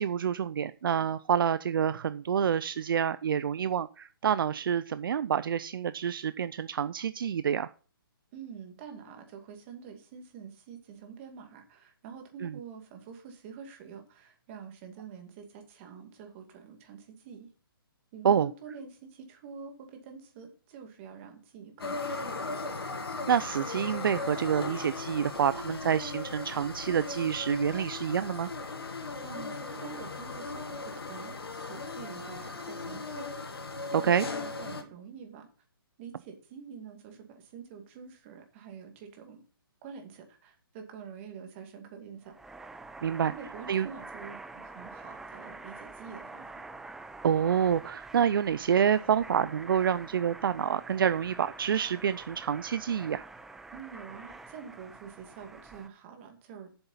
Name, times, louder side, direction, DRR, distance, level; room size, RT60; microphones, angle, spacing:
voice 1, 0.0-7.7 12.4-12.6 18.2-18.5 23.3-28.5 33.9-34.3 43.0-43.3 43.7-43.9 47.2-53.3, right 8 dB, 65° right, 15 dB, 0.5 m, -28 dB
voice 2, 8.3-17.5 18.1-22.4 29.2-35.5 36.0-39.4 39.8-42.3 43.2-46.6 53.7-56.7, right 6 dB, 30° right, 4 dB, 2.4 m, -46 dB
sound 1, 21.8-34.8, left 3 dB, 90° left, 1.8 m, -37 dB
sound 2, 42.2-55.9, right 3 dB, 5° right, 0.4 m, -46 dB
7.9 x 7.0 x 5.6 m, 0.39 s
hypercardioid pair, 150°, 12 cm